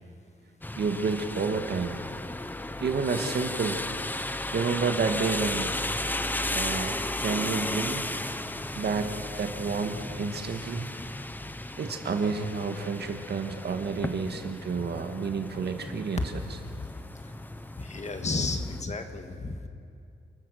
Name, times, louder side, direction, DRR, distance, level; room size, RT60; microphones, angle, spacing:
sound 1, 0.6-18.8, left 1 dB, 10° left, 0.7 m, -35 dB
voice 1, 0.8-2.0 2.8-3.8 4.5-5.8 6.5-8.0 8.8-10.9 11.8-16.4, right 5 dB, 60° right, 5 dB, 1.8 m, -30 dB
voice 2, 17.8-19.7, left 3 dB, 40° left, 5 dB, 1.7 m, -32 dB
29.5 x 14.5 x 6.4 m, 2.4 s
wide cardioid pair, 140°, 19 cm